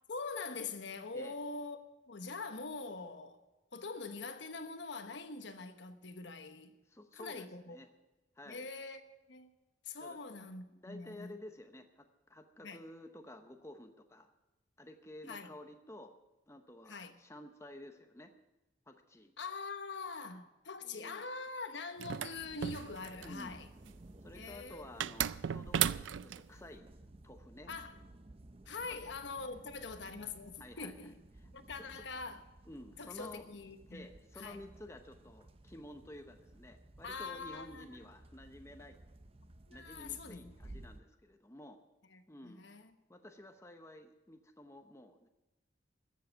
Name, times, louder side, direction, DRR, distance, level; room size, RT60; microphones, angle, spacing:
voice 1, 0.1-1.8 2.1-3.4 3.7-6.7 7.1-7.8 8.5-9.0 9.3-9.5 9.8-11.3 12.6-12.8 15.3-15.5 16.9-17.1 19.4-23.7 24.3-24.9 27.7-28.0 28.7-31.1 31.5-32.4 33.0-34.1 34.4-34.6 37.0-37.9 39.7-40.7 42.1-42.9, left 4 dB, 70° left, 1.1 m, -44 dB
voice 2, 6.9-7.9 8.4-8.7 10.0-10.2 10.7-14.3 14.8-16.1 16.5-18.3 18.9-19.3 20.8-21.3 23.2-23.6 24.2-26.9 27.2-27.7 28.9-29.0 30.6-30.9 31.4-31.5 31.8-32.0 32.7-33.5 33.9-39.0 39.7-41.8 42.3-42.6 43.1-45.3, left 1 dB, 15° left, 0.8 m, -52 dB
sound 1, 22.0-23.4 25.0-26.4, right 10 dB, 80° right, 0.4 m, -35 dB
sound 2, 22.3-41.0, right 1 dB, 30° right, 0.6 m, -56 dB
14.5 x 7.6 x 9.0 m
head